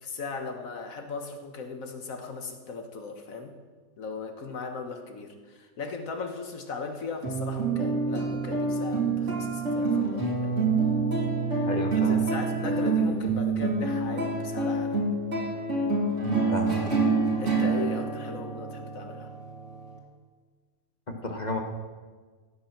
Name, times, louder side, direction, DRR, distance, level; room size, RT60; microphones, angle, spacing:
voice 1, 0.0-3.5 4.0-10.7 11.9-15.1 17.4-19.3, left 4 dB, 65° left, 5 dB, 1.7 m, -38 dB
sound 1, 7.2-20.0, right 3 dB, 55° right, 2.6 m, -27 dB
voice 2, 11.7-12.2 16.5-16.8 21.1-21.6, left 2 dB, 30° left, 3 dB, 1.3 m, -31 dB
15.5 x 9.2 x 6.0 m, 1.5 s
omnidirectional pair, 1.5 m